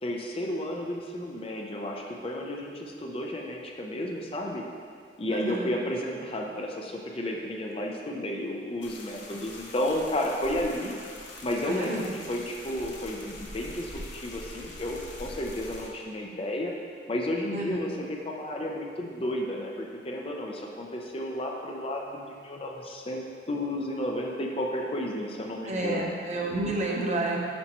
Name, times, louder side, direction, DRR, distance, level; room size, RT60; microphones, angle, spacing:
voice 1, 0.0-4.6 5.2-10.9 11.4-16.7 17.1-26.2, left 1 dB, 30° left, 0 dB, 0.5 m, -32 dB
voice 2, 5.3-5.7 11.7-12.1 17.5-17.8 25.6-27.4, right 2 dB, 40° right, -2 dB, 0.8 m, -30 dB
sound 1, 8.8-15.9, left 2 dB, 80° left, 1.0 m, -43 dB
8.6 x 5.5 x 3.0 m, 2.2 s
head